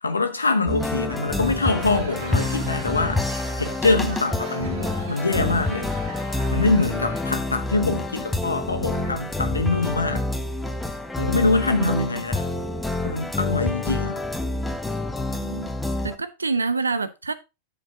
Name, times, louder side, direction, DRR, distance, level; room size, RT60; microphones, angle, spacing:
voice 1, 0.0-5.9 6.5-10.3 11.2-12.4 13.0-14.2, left 3 dB, 80° left, 1.5 m, -24 dB
sound 1, 0.7-16.2, left 2 dB, 5° left, 1.1 m, -28 dB
Laughter / Crowd, 1.3-7.5, right 2 dB, 55° right, 2.8 m, -39 dB
voice 2, 11.7-12.2 15.3-15.7 16.0-17.3, right 3 dB, 75° right, 0.8 m, -27 dB
10.5 x 6.8 x 3.7 m
figure-of-eight pair, 90°, 0 cm